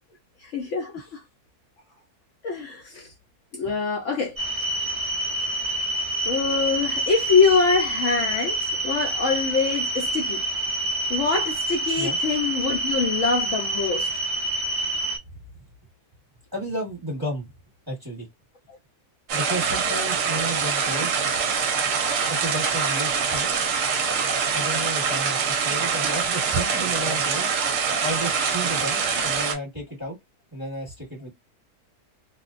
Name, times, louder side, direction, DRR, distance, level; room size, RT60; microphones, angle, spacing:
voice 1, 0.4-1.2 2.4-3.1 3.5-4.4 6.2-8.6 8.8-10.4 11.1-14.1, left 5 dB, 65° left, 0.9 m, -24 dB
sound 1, 4.4-15.2, right 1 dB, 40° right, 0.5 m, -27 dB
voice 2, 16.5-17.5 17.9-18.3 19.3-21.1 22.3-23.5 24.5-27.5 28.0-30.2 30.5-31.3, right 1 dB, 15° right, 1.1 m, -32 dB
sound 2, 19.3-29.6, right 6 dB, 65° right, 0.9 m, -24 dB
2.5 x 2.1 x 2.4 m
omnidirectional pair, 1.6 m